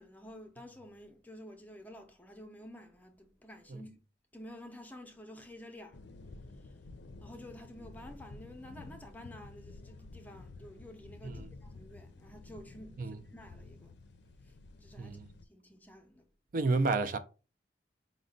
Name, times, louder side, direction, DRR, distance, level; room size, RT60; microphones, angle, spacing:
voice 1, 0.0-3.9 4.3-6.1 6.5-6.8 7.2-14.0 14.4-15.2 15.5-16.3, left 1 dB, 10° left, 0.6 m, -51 dB
sound 1, 5.9-15.4, left 3 dB, 85° left, 0.5 m, -51 dB
voice 2, 16.5-17.2, right 3 dB, 50° right, 0.4 m, -30 dB
5.0 x 2.1 x 3.8 m
head